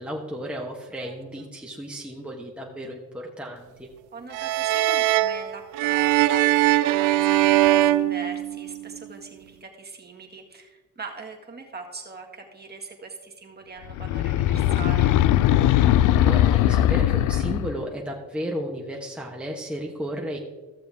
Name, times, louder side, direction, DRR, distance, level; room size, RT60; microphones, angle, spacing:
voice 1, 0.0-3.9 16.2-20.4, equal, 5° right, -2 dB, 1.2 m, -33 dB
voice 2, 4.1-15.1, right 4 dB, 35° right, 1 dB, 1.8 m, -40 dB
sound 1, 4.3-8.9, right 15 dB, 90° right, 0.5 m, -21 dB
sound 2, 13.9-17.8, left 12 dB, 85° left, 0.5 m, -20 dB
14.5 x 6.8 x 3.5 m, 1.3 s
cardioid pair, 90°, 30 cm